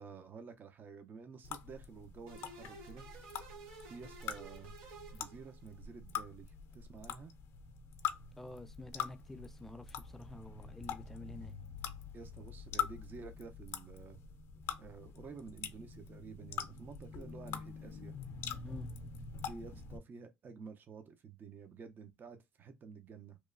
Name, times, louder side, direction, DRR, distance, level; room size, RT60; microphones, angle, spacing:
voice 1, 0.0-3.1 3.9-4.7 5.1-7.3 12.1-14.4 14.8-18.2 19.5-23.4, right 5 dB, 45° right, 0.5 m, -51 dB
sound 1, 1.4-20.0, left 8 dB, 65° left, 0.5 m, -44 dB
sound 2, 2.3-5.9, right 3 dB, 85° right, 0.8 m, -53 dB
voice 2, 8.4-11.5 18.6-18.9, left 2 dB, 5° left, 0.4 m, -49 dB
2.9 x 2.2 x 2.4 m
supercardioid pair, 75°, 5 cm